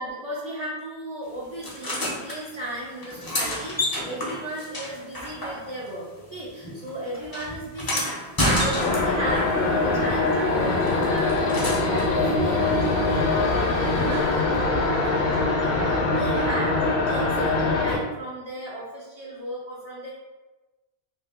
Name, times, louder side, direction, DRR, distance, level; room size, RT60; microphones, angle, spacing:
voice 1, 0.0-20.1, right 1 dB, 45° right, -7 dB, 0.6 m, -36 dB
sound 1, 1.6-2.4 3.0-6.0 6.2-9.4 10.9-12.1 14.1-14.2, left 1 dB, 25° left, 0.5 m, -29 dB
sound 2, 8.7-18.0, left 3 dB, 65° left, 0.8 m, -23 dB
2.7 x 2.6 x 3.5 m, 1.1 s
omnidirectional pair, 1.1 m